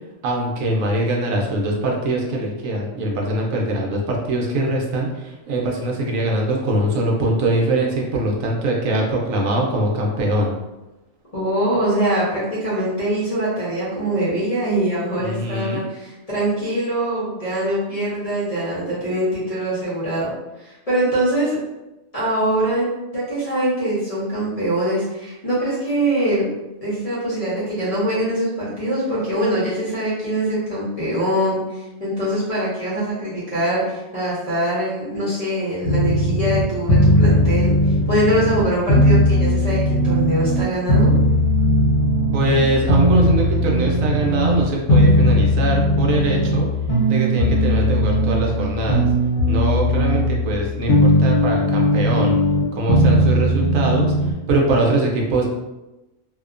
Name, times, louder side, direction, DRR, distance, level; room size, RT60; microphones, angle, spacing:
voice 1, 0.2-10.5 15.2-15.9 42.3-46.7 47.1-49.1 49.5-52.4 52.7-54.1 54.5-55.5, right 1 dB, 80° right, -1 dB, 1.0 m, -22 dB
voice 2, 11.3-20.3 20.6-21.6 22.1-22.9 23.1-26.5 26.8-41.1, right 1 dB, 35° left, -9 dB, 0.7 m, -23 dB
sound 1, 35.8-54.3, equal, 80° left, 1.2 m, -18 dB
2.7 x 2.1 x 2.4 m, 1.0 s
omnidirectional pair, 1.4 m